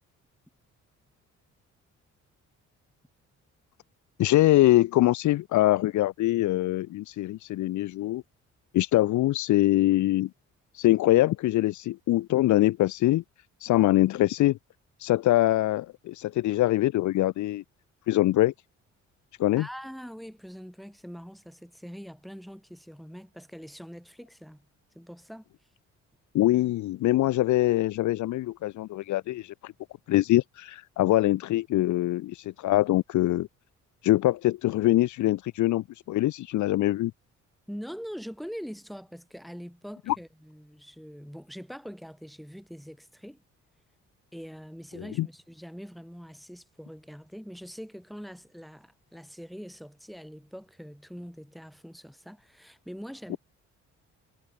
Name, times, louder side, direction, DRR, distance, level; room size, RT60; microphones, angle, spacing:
voice 1, 4.2-8.2 8.7-10.3 10.8-13.2 13.6-14.6 15.0-17.6 18.1-18.5 19.4-19.7 26.3-29.7 30.1-33.5 34.0-37.1 40.1-40.2 45.2-45.3, left 16 dB, 70° left, 0.7 m, -23 dB
voice 2, 19.6-24.7 24.9-25.4 37.7-43.4 44.3-53.4, equal, ahead, 6.0 m, -43 dB
cardioid pair, 90°, 30 cm